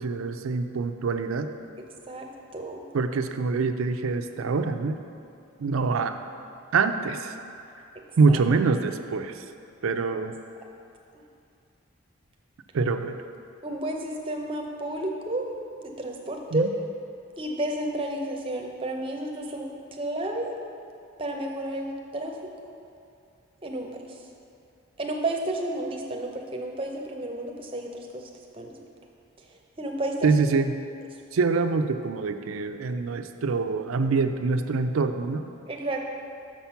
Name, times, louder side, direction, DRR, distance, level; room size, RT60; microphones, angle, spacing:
voice 1, 0.0-1.5 2.9-5.0 5.6-6.2 6.7-7.4 8.2-9.4 9.8-10.3 12.7-13.1 16.5-16.7 30.2-30.8 31.3-35.4, right 4 dB, 75° right, 8 dB, 0.4 m, -25 dB
voice 2, 2.5-2.8 8.3-8.4 13.6-15.5 15.8-16.7 17.4-20.5 21.2-22.3 23.6-24.0 25.0-28.7 29.8-30.3 35.7-36.0, right 1 dB, 25° right, 1 dB, 0.6 m, -31 dB
6.1 x 5.9 x 5.7 m, 2.6 s
head